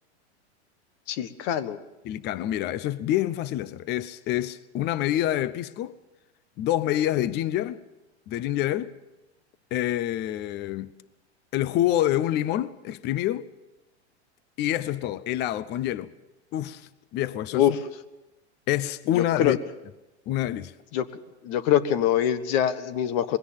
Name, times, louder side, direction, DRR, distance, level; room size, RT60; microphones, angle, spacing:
voice 1, 1.1-1.8 17.5-17.7 19.2-19.5 20.9-21.1 21.4-23.4, left 10 dB, 50° left, 1.4 m, -24 dB
voice 2, 2.0-6.0 6.6-7.8 8.3-8.9 9.7-10.9 11.5-13.5 14.6-16.1 16.5-17.8 18.7-19.6 20.3-20.7, left 13 dB, 30° left, 0.7 m, -27 dB
21.5 x 17.0 x 7.3 m
hypercardioid pair, 130°, 34 cm